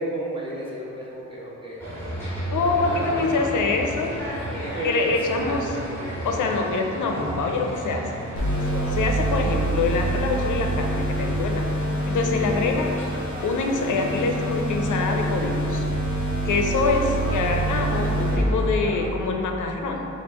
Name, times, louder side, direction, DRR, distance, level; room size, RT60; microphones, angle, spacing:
voice 1, 0.0-1.8 2.8-3.3 4.3-5.5 7.1-7.4 8.5-8.8 12.2-12.4 16.4-16.7, right 1 dB, 15° right, -6 dB, 0.7 m, -33 dB
sound 1, 1.8-19.1, right 1 dB, 5° left, 1.3 m, -33 dB
voice 2, 2.5-4.2 4.8-5.8 6.2-8.1 8.9-11.7 12.1-12.9 13.4-15.9 16.5-20.0, left 3 dB, 90° left, 2 dB, 0.5 m, -25 dB
sound 2, 8.4-18.4, right 1 dB, 35° left, 1.2 m, -26 dB
4.4 x 2.4 x 4.2 m, 2.8 s
wide cardioid pair, 175°, 30 cm